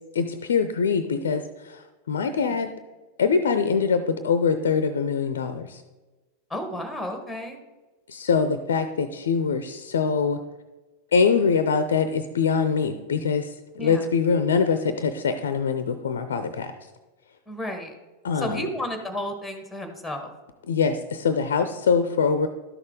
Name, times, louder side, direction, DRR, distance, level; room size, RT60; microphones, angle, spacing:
voice 1, 0.1-2.7 3.2-5.8 8.1-10.4 11.1-16.7 18.2-18.7 20.7-22.5, left 5 dB, 65° left, 10 dB, 0.5 m, -23 dB
voice 2, 6.5-7.6 13.8-14.0 17.5-17.9 18.4-20.3, equal, ahead, 6 dB, 1.3 m, -32 dB
12.0 x 6.4 x 3.8 m, 1.2 s
figure-of-eight pair, 90°, 0 cm